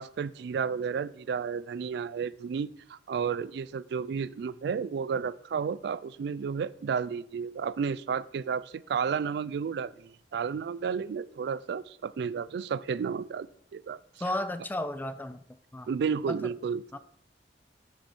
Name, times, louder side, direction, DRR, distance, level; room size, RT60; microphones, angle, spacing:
voice 1, 0.0-14.0 15.9-16.8, right 6 dB, 65° right, 0.3 m, -32 dB
voice 2, 14.2-15.4 15.7-15.9 16.3-16.4 16.9-17.0, left 1 dB, 10° left, 0.4 m, -33 dB
7.7 x 6.8 x 4.4 m
head